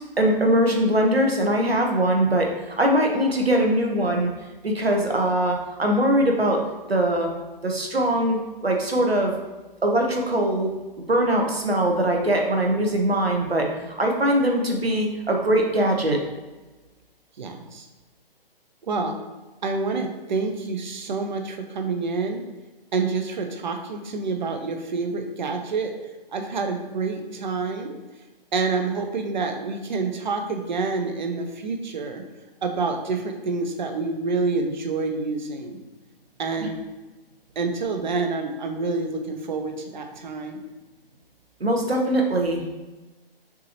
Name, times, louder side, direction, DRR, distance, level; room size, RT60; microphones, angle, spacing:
voice 1, 0.2-4.3 4.6-6.6 6.9-7.3 7.6-9.3 9.8-10.7 11.1-16.2 41.6-42.6, right 1 dB, 85° right, 1 dB, 1.0 m, -21 dB
voice 2, 17.4-17.9 18.8-19.2 19.6-22.4 22.9-25.9 26.3-28.0 28.5-32.2 32.6-35.8 36.4-36.8 37.6-40.6, right 4 dB, 50° right, 5 dB, 0.7 m, -27 dB
6.0 x 2.9 x 2.9 m, 1.2 s
figure-of-eight pair, 130°, 30 cm